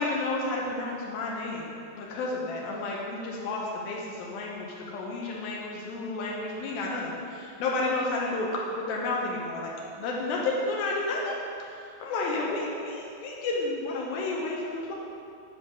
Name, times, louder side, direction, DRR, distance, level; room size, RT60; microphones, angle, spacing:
voice 1, 0.0-14.9, left 2 dB, 80° left, -3 dB, 2.1 m, -31 dB
9.8 x 3.8 x 6.3 m, 2.5 s
omnidirectional pair, 5.3 m